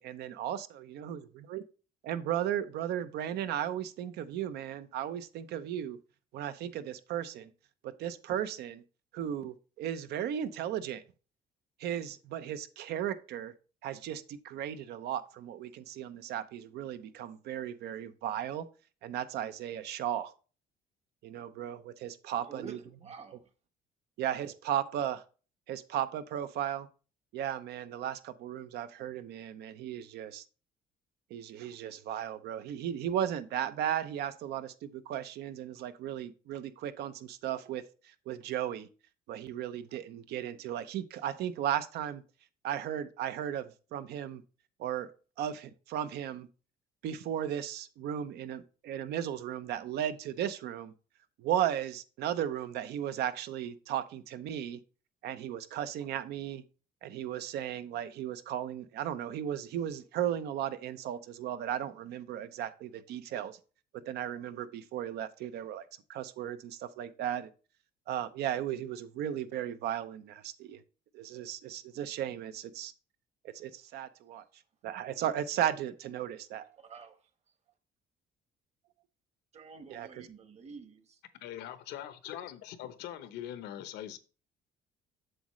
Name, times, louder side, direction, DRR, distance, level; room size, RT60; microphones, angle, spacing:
voice 1, 0.0-1.6 2.0-6.0 6.3-7.5 7.8-8.8 9.1-11.0 11.8-13.5 13.8-18.7 19.0-20.3 21.2-22.8 24.2-25.2 25.7-26.9 27.3-30.4 31.3-38.9 39.3-42.2 42.6-44.4 44.8-45.1 45.4-46.5 47.0-50.9 51.4-54.8 55.2-56.6 57.0-63.6 64.1-67.5 68.1-70.8 71.1-72.9 73.5-74.4 74.8-76.7 79.9-80.1, right 10 dB, 75° right, 0.7 m, -35 dB
voice 2, 22.4-23.4 76.8-77.2 79.5-80.9, right 5 dB, 40° right, 1.3 m, -48 dB
voice 3, 81.4-84.2, left 11 dB, 85° left, 0.9 m, -42 dB
7.8 x 6.3 x 3.1 m
cardioid pair, 110°, 17 cm